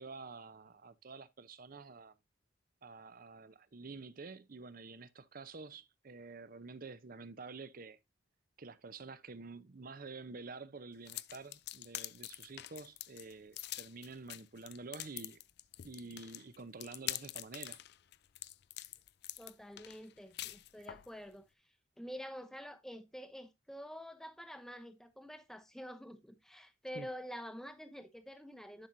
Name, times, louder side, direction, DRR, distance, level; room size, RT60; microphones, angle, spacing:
voice 1, 0.0-2.1 2.8-8.0 8.6-15.4 15.8-17.8 26.9-27.1, right 4 dB, 45° right, 0.6 m, -49 dB
sound 1, 11.0-21.1, left 15 dB, 55° left, 0.4 m, -45 dB
voice 2, 19.4-21.4 22.0-28.9, equal, ahead, 0.7 m, -48 dB
10.5 x 5.9 x 2.6 m
head